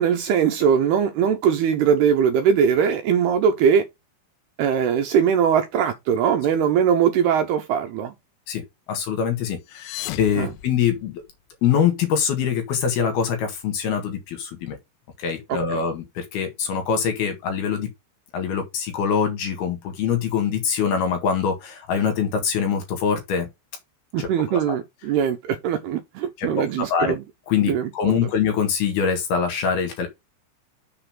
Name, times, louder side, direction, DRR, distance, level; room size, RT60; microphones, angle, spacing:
voice 1, 0.0-3.9 4.6-8.1 10.4-10.5 15.5-15.8 24.1-27.2 27.7-28.3, right 7 dB, 75° right, 2.5 m, -21 dB
voice 2, 8.9-11.2 11.6-14.8 15.2-17.9 18.3-23.5 24.2-24.8 26.4-27.1 27.5-30.1, left 7 dB, 65° left, 3.4 m, -24 dB
sound 1, 9.6-11.5, left 13 dB, 85° left, 3.2 m, -37 dB
6.9 x 5.6 x 5.9 m
omnidirectional pair, 5.4 m